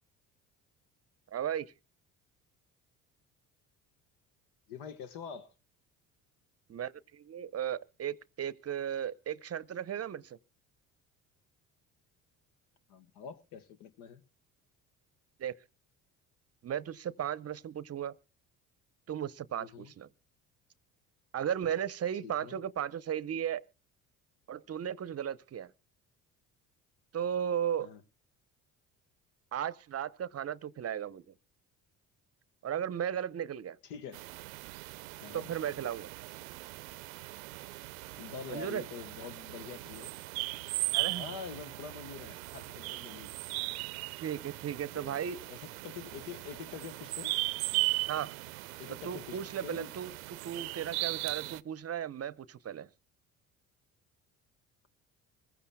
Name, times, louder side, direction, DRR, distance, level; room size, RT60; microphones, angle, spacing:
voice 1, 1.3-1.7 6.7-10.4 15.4-15.5 16.6-18.1 19.1-20.1 21.3-23.6 24.5-25.7 27.1-27.9 29.5-31.2 32.6-33.8 35.3-36.1 38.5-38.8 40.9-41.2 44.2-45.4 48.1-48.3 48.9-52.9, right 9 dB, 35° right, 0.7 m, -35 dB
voice 2, 4.7-5.5 12.9-14.2 19.6-19.9 22.2-22.6 27.8-28.0 33.8-34.2 35.2-35.5 38.2-40.1 41.1-43.4 44.9-47.4 47.7-47.9 48.8-49.9 50.5-50.6, left 7 dB, 75° left, 1.4 m, -45 dB
sound 1, 34.1-51.6, right 23 dB, 80° right, 0.6 m, -38 dB
24.5 x 15.0 x 2.2 m
hypercardioid pair, 60°, 40 cm